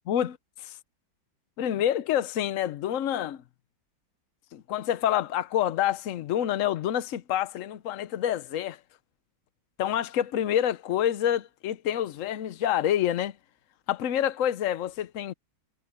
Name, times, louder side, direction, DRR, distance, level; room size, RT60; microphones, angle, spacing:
voice 1, 0.1-0.8 1.6-3.4 4.5-8.8 9.8-13.4 13.9-15.3, left 11 dB, 75° left, 0.7 m, -27 dB
omnidirectional pair, 2.2 m